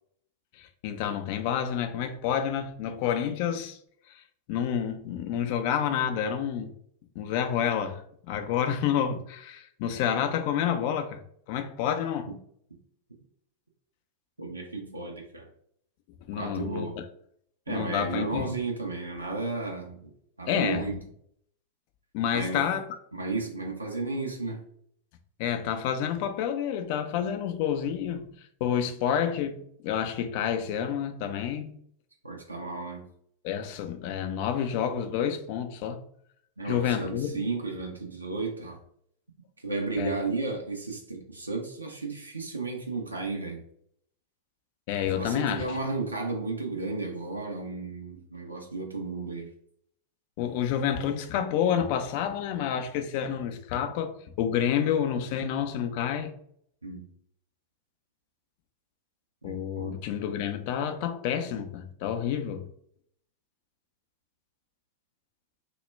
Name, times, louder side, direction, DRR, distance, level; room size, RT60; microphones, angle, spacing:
voice 1, 0.6-3.8 4.1-4.2 4.5-6.7 7.2-11.2 11.5-12.3 16.3-17.0 17.7-18.5 20.5-20.9 22.1-22.8 25.4-28.3 28.6-29.6 29.8-31.7 33.4-36.0 36.6-37.4 40.0-40.2 44.9-45.8 50.4-56.3 59.4-62.6, left 9 dB, 45° left, 0.3 m, -29 dB
voice 2, 14.4-15.5 16.4-17.0 17.7-20.1 20.4-20.9 22.3-22.7 23.1-24.6 32.2-33.0 36.6-38.8 39.6-43.6 45.2-49.5 56.8-57.1 59.4-59.9, right 3 dB, 80° right, 0.4 m, -33 dB
2.1 x 2.1 x 3.2 m
figure-of-eight pair, 90°, 0 cm